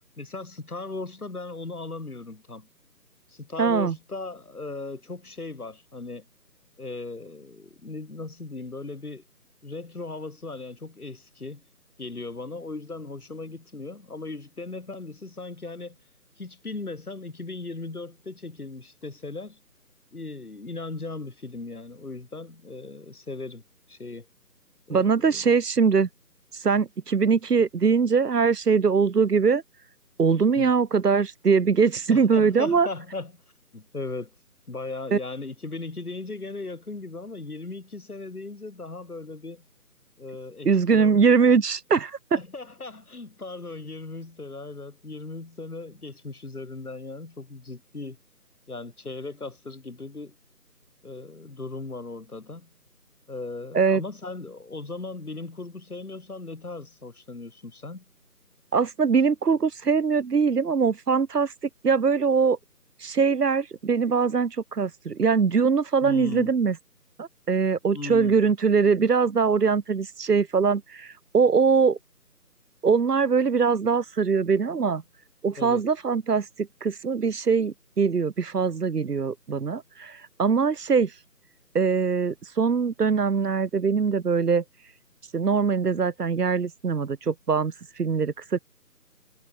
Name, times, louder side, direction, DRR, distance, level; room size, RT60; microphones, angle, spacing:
voice 1, 0.2-2.7 3.3-6.3 6.8-9.2 9.6-11.6 12.0-16.0 16.4-19.6 20.1-23.6 23.9-24.3 24.9-25.5 30.5-30.7 32.1-33.3 33.7-34.3 34.7-39.7 40.2-41.2 42.3-48.2 48.7-50.3 51.0-52.7 53.3-58.0 66.0-66.5 67.9-68.3 75.6-75.8, left 3 dB, 65° left, 5.4 m, -37 dB
voice 2, 3.6-3.9 24.9-26.1 26.5-29.6 30.2-32.9 35.1-35.2 40.6-42.4 53.7-54.0 58.7-61.5 61.8-62.6 63.0-66.8 67.2-72.0 72.8-75.0 75.4-81.1 81.7-84.6 85.3-88.6, right 5 dB, 70° right, 1.0 m, -22 dB
figure-of-eight pair, 170°, 48 cm